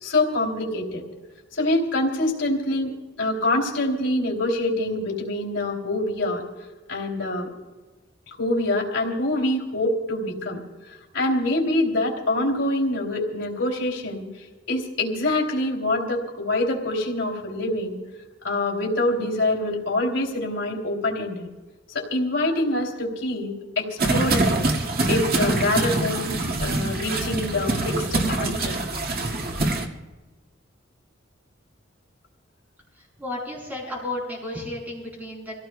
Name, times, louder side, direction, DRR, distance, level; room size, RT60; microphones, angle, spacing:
voice 1, 0.0-1.0 1.5-2.9 3.2-6.4 6.9-7.5 8.4-10.6 10.9-14.2 14.7-18.0 18.4-21.5 21.9-24.6 25.1-26.3 26.6-28.8, left 1 dB, 80° left, 0 dB, 2.9 m, -25 dB
sound 1, 24.0-29.9, right 2 dB, 50° right, 1.9 m, -24 dB
voice 2, 33.2-35.5, left 1 dB, 10° right, -3 dB, 6.3 m, -32 dB
28.0 x 16.5 x 2.2 m, 1.3 s
head